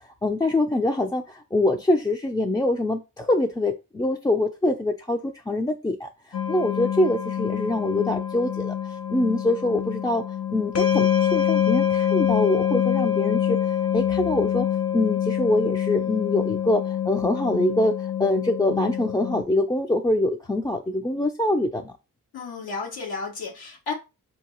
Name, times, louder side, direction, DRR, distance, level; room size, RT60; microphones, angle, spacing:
voice 1, 0.2-10.2 10.5-14.7 14.9-21.9, left 2 dB, 10° left, 0.3 m, -24 dB
sound 1, 6.3-19.4, left 9 dB, 45° left, 0.8 m, -25 dB
voice 2, 15.9-16.6 22.3-23.9, left 4 dB, 90° left, 1.0 m, -34 dB
4.5 x 2.7 x 2.9 m
cardioid pair, 95°, 36 cm